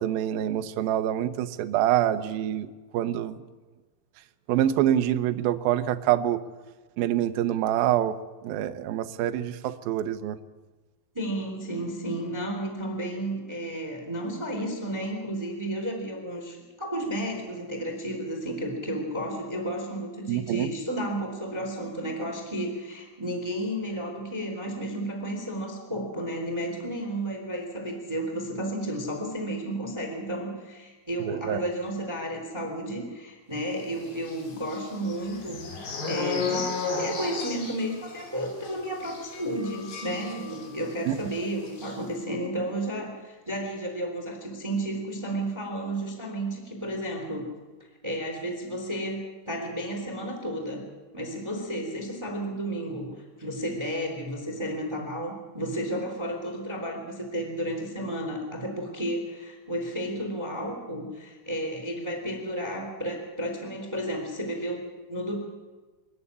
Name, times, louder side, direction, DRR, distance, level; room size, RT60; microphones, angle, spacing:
voice 1, 0.0-2.7 2.9-3.4 4.5-6.4 7.0-8.2 8.4-10.4 20.3-20.7 31.3-31.6 41.1-41.2, right 12 dB, 80° right, 8 dB, 2.1 m, -26 dB
voice 2, 11.1-47.5 48.0-50.8 51.1-53.1 53.4-65.3, right 1 dB, 5° right, 3 dB, 2.8 m, -32 dB
sound 1, 34.2-40.9 41.2-41.4 41.7-41.9, left 4 dB, 55° left, 5.8 m, -34 dB
24.5 x 14.0 x 9.8 m, 1.3 s
omnidirectional pair, 5.7 m